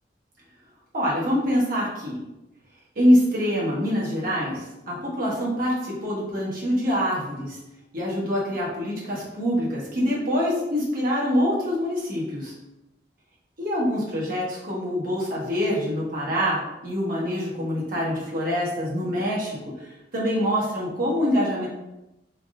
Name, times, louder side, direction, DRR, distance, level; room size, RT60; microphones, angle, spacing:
voice 1, 0.9-2.2 3.0-7.6 7.9-12.5 13.6-21.7, equal, 55° right, -5 dB, 1.0 m, -25 dB
3.4 x 2.6 x 2.4 m, 0.95 s
head